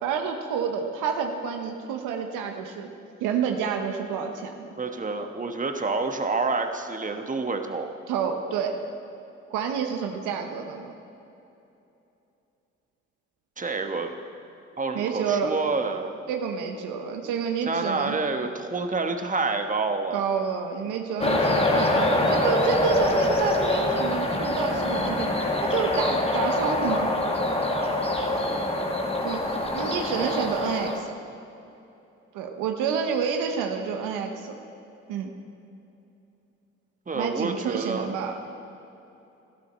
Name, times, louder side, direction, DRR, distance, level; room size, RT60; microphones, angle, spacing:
voice 1, 0.0-2.9 3.2-4.7 8.1-8.8 9.5-10.9 14.9-15.5 16.3-18.2 20.1-25.3 25.6-27.1 29.2-31.1 32.3-34.6 35.1-35.3 37.1-38.4, right 6 dB, 85° right, 4 dB, 0.9 m, -29 dB
voice 2, 4.8-7.9 13.6-14.2 14.8-16.2 17.7-20.2 37.1-38.1, right 3 dB, 25° right, 6 dB, 1.2 m, -28 dB
sound 1, 21.2-31.0, left 1 dB, 20° left, 1.5 m, -25 dB
12.5 x 12.0 x 4.3 m, 2.9 s
supercardioid pair, 50°, 30 cm